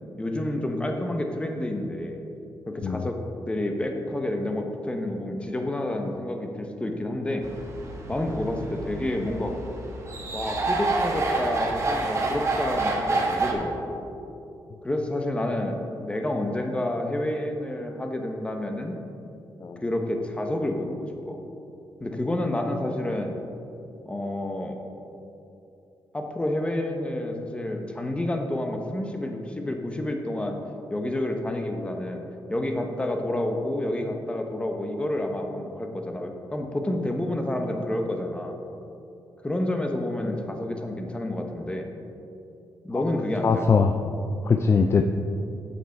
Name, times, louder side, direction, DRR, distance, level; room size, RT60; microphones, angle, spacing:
voice 1, 0.2-2.2 2.7-3.2 3.5-7.5 8.1-9.5 10.3-14.1 14.8-18.9 19.8-21.4 22.0-23.4 24.1-24.8 26.1-30.6 30.9-32.2 32.5-38.6 39.4-41.9 42.8-43.7, left 1 dB, 15° left, 3 dB, 0.9 m, -29 dB
sound 1, 7.4-13.5, right 3 dB, 40° right, 1.2 m, -28 dB
voice 2, 43.4-44.0 44.4-45.0, left 5 dB, 35° left, 6 dB, 0.4 m, -21 dB
7.9 x 7.0 x 4.5 m, 2.7 s
cardioid pair, 105°, 8 cm